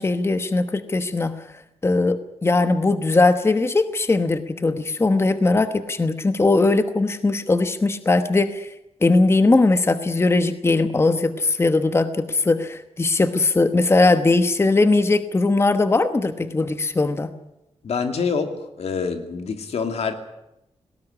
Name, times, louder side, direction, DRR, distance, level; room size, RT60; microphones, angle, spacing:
voice 1, 0.0-1.4 1.8-8.7 9.0-17.3, left 3 dB, 25° left, 10 dB, 1.1 m, -20 dB
voice 2, 17.8-20.1, left 5 dB, 80° left, 6 dB, 2.6 m, -26 dB
19.0 x 18.0 x 9.9 m, 0.87 s
wide cardioid pair, 145°, 11 cm